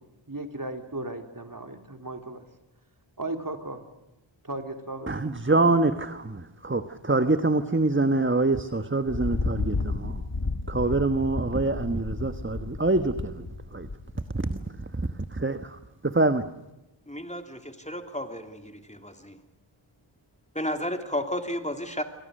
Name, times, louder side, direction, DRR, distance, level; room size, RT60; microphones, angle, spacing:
voice 1, 0.3-2.4 3.2-3.8 4.4-5.1, right 2 dB, 40° right, 6 dB, 3.5 m, -36 dB
voice 2, 5.1-10.2 10.7-13.3 13.7-13.9 15.4-15.6 16.0-16.4, right 2 dB, 25° right, 10 dB, 1.3 m, -25 dB
Thunder, 9.1-14.5, left 3 dB, 50° left, 2.0 m, -32 dB
voice 3, 17.1-19.4 20.5-22.0, left 1 dB, 15° left, 6 dB, 2.9 m, -33 dB
28.5 x 24.0 x 6.6 m, 0.96 s
wide cardioid pair, 50°, 50 cm